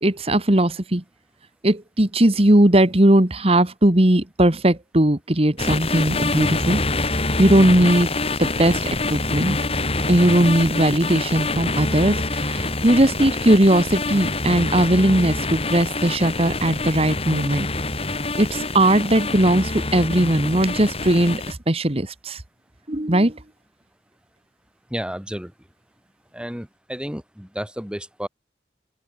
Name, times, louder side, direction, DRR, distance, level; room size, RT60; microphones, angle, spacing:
voice 1, 0.0-1.0 1.6-6.8 7.1-8.1 8.4-9.6 10.1-17.7 18.4-22.4 22.9-23.4, right 1 dB, 35° right, 1.8 m, -18 dB
sound 1, 5.6-21.5, left 2 dB, 35° left, 5.7 m, -26 dB
voice 2, 24.9-25.5 26.3-28.3, equal, 5° right, 3.2 m, -31 dB
open air
head